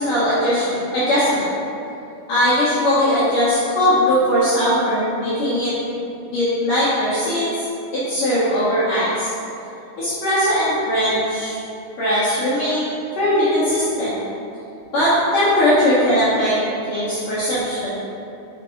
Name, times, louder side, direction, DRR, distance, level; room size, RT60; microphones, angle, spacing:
voice 1, 0.0-1.4 2.3-5.7 6.3-7.5 7.9-9.3 10.0-11.6 12.0-14.2 14.9-16.6 16.9-17.9, equal, 70° left, -12 dB, 2.0 m, -19 dB
6.4 x 5.1 x 3.8 m, 2.7 s
omnidirectional pair, 5.7 m